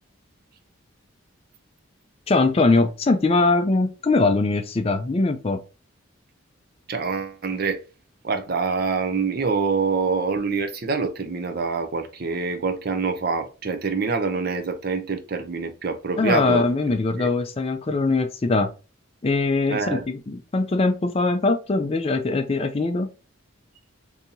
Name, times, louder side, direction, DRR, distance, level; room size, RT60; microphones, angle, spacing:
voice 1, 2.3-5.6 16.2-18.7 19.2-23.1, left 3 dB, 30° left, 0.4 m, -21 dB
voice 2, 6.9-7.8 8.2-16.7 17.2-17.3 19.7-20.0, right 4 dB, 45° right, 0.5 m, -25 dB
3.9 x 2.7 x 2.7 m
head